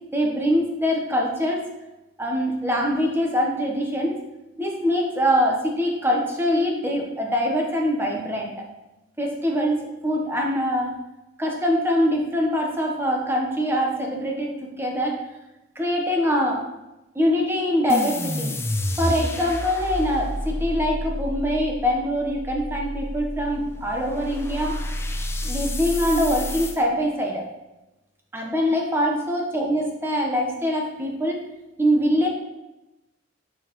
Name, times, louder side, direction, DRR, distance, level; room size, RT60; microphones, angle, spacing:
voice 1, 0.1-1.6 2.2-4.2 4.6-8.5 9.2-10.9 11.4-15.2 15.7-16.6 17.1-18.6 19.0-24.8 25.4-27.5 28.3-31.4 31.8-32.3, equal, 10° right, -1 dB, 1.1 m, -23 dB
sound 1, 17.9-26.8, left 1 dB, 15° left, 0.4 m, -30 dB
6.5 x 6.3 x 3.1 m, 0.98 s
head